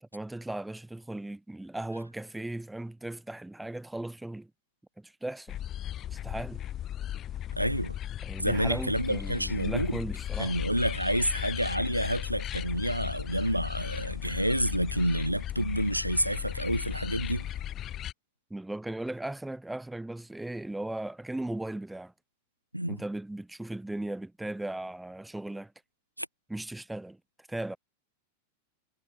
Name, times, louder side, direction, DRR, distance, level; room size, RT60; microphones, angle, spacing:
voice 1, 0.0-4.5 5.0-5.6 6.1-6.6 8.2-10.6 18.5-22.1 22.9-25.7 26.5-27.2 27.5-27.8, right 1 dB, 5° right, 0.7 m, -37 dB
sound 1, 5.5-18.1, left 11 dB, 30° left, 2.6 m, -36 dB
voice 2, 7.5-8.0 8.4-10.0 10.4-17.5 22.7-23.0 26.2-26.3, right 1 dB, 90° right, 1.3 m, -29 dB
figure-of-eight pair, 90°, 0 cm